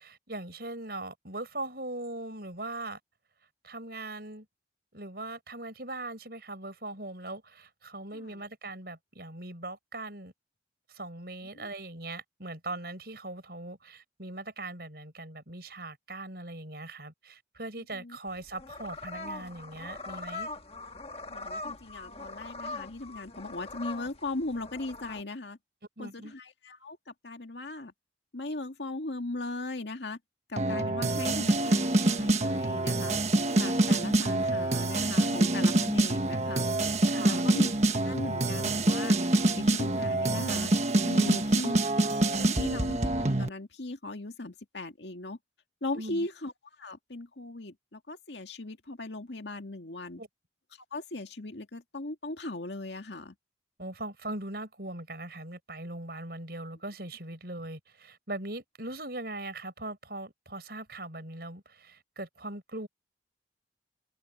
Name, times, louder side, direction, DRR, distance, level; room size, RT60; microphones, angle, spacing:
voice 1, 0.0-3.0 3.6-4.5 4.9-10.3 10.9-20.5 26.0-26.3 37.1-37.5 41.2-41.4 45.9-46.3 50.2-50.3 53.8-62.9, right 2 dB, 60° right, 6.6 m, -40 dB
sound 1, 18.3-25.2, left 2 dB, 35° left, 1.4 m, -41 dB
voice 2, 21.3-25.6 26.0-27.9 28.3-30.2 30.5-33.1 33.5-36.7 37.2-37.7 38.1-39.2 39.5-40.7 41.0-42.1 42.4-45.4 45.8-46.5 46.8-50.2 50.9-53.3, left 2 dB, 75° left, 2.1 m, -38 dB
sound 2, 30.6-43.5, right 2 dB, 40° right, 1.4 m, -26 dB
head